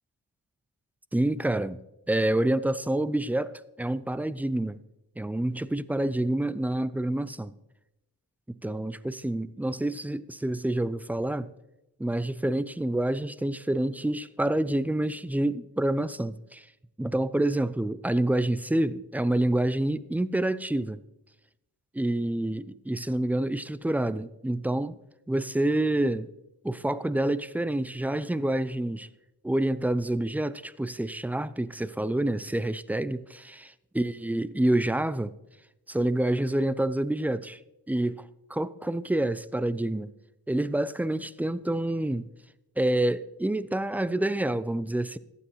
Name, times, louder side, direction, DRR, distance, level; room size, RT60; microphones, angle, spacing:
voice 1, 1.1-1.8 2.1-4.8 5.2-7.5 8.5-11.5 12.0-16.7 17.0-21.0 21.9-25.0 25.3-26.3 26.6-29.1 29.4-35.3 35.9-37.6 37.9-40.1 40.5-42.3 42.8-45.2, right 1 dB, 5° right, 0.3 m, -27 dB
14.5 x 9.7 x 3.1 m
cardioid pair, 65°, 38 cm